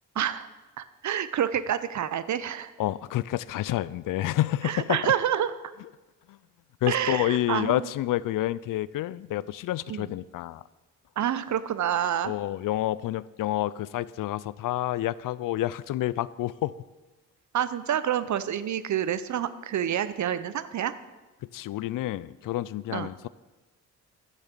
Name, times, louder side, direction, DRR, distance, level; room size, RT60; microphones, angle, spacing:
voice 1, 0.1-0.5 0.8-2.7 4.6-5.6 6.9-7.9 9.9-10.1 11.2-12.3 17.5-20.9 22.9-23.1, right 10 dB, 55° right, 14 dB, 0.8 m, -28 dB
voice 2, 2.8-5.1 6.3-6.4 6.8-10.6 12.2-16.7 21.5-23.3, left 14 dB, 70° left, 19 dB, 0.5 m, -29 dB
10.5 x 6.6 x 7.5 m, 1.2 s
cardioid pair, 70°, 34 cm